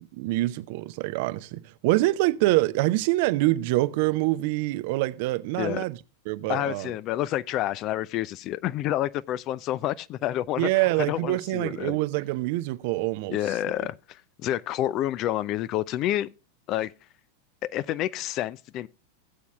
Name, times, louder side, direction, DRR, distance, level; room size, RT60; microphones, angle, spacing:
voice 1, 0.0-6.0 6.3-6.9 10.6-13.9, right 18 dB, 50° right, 0.6 m, -25 dB
voice 2, 6.5-10.7 11.1-12.0 13.3-16.3 16.7-16.9 17.6-18.9, left 13 dB, 35° left, 0.4 m, -29 dB
17.0 x 8.4 x 2.3 m
figure-of-eight pair, 90°, 0 cm